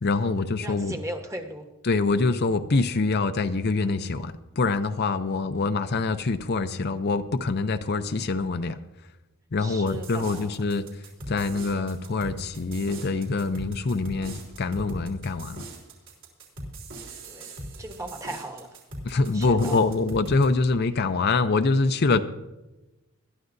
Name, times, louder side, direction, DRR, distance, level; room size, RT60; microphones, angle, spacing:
voice 1, 0.0-1.0 1.8-8.8 9.5-15.6 19.0-22.2, left 3 dB, 50° left, 9 dB, 0.6 m, -25 dB
voice 2, 0.6-1.7 9.6-10.5 17.3-18.8 19.3-19.8, right 1 dB, 15° right, 5 dB, 1.2 m, -37 dB
sound 1, 9.9-20.5, right 1 dB, 65° right, 3.5 m, -40 dB
20.5 x 12.0 x 2.6 m, 1.0 s
head